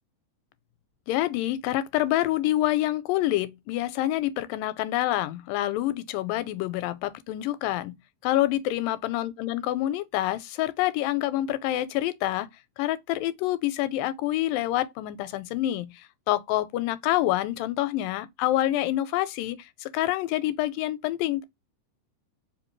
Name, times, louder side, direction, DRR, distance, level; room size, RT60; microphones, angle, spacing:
voice 1, 1.1-7.9 8.2-12.5 12.8-21.4, left 14 dB, 85° left, 2.2 m, -27 dB
5.0 x 2.6 x 3.0 m
omnidirectional pair, 3.8 m